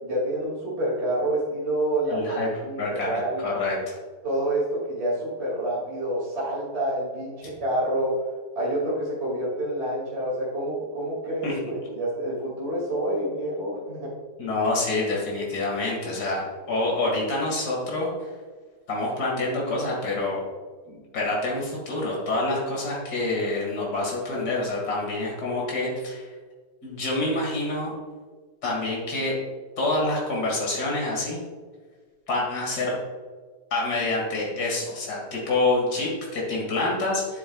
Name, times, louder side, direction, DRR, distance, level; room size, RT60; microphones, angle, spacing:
voice 1, 0.0-2.4 2.6-3.5 4.2-8.2 8.6-14.1, right 1 dB, 40° right, -7 dB, 2.7 m, -28 dB
voice 2, 2.1-2.5 2.8-4.0 11.4-11.5 14.4-18.3 18.9-20.4 20.9-26.3 26.8-27.9 28.6-29.3 29.8-31.4 32.3-32.9 33.7-37.4, left 2 dB, 65° left, -3 dB, 2.7 m, -27 dB
9.6 x 8.9 x 2.3 m, 1.5 s
omnidirectional pair, 1.8 m